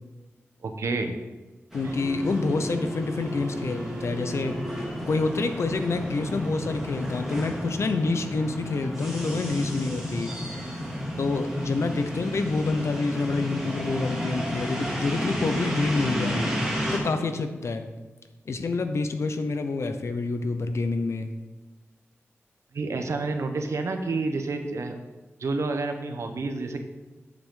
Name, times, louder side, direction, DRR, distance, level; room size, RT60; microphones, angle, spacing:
voice 1, 0.6-1.2 1.8-1.9 22.7-25.0 25.4-26.8, right 3 dB, 85° right, 6 dB, 0.9 m, -29 dB
voice 2, 1.7-4.6 5.1-10.3 11.2-16.6 16.9-17.9 18.5-21.3, left 3 dB, 70° left, 8 dB, 0.8 m, -27 dB
sound 1, 1.7-17.0, equal, 5° right, 2.5 m, -32 dB
9.0 x 7.6 x 3.9 m, 1.2 s
wide cardioid pair, 115°, 5 cm